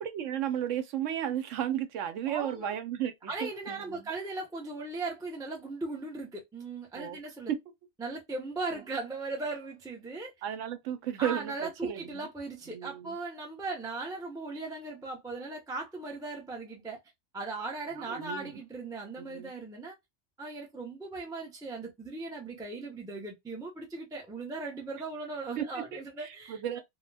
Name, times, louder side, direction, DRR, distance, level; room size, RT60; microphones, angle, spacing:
voice 1, 0.0-4.1 6.9-7.2 8.7-8.8 10.4-12.3 12.7-13.2 17.9-18.6 19.2-19.5 25.6-25.8 26.2-26.8, right 10 dB, 75° right, 0.9 m, -34 dB
voice 2, 2.3-2.7 3.3-7.5 8.0-10.3 11.2-17.0 17.3-19.9 20.4-26.8, right 3 dB, 5° right, 0.4 m, -38 dB
2.2 x 2.2 x 3.2 m
omnidirectional pair, 1.3 m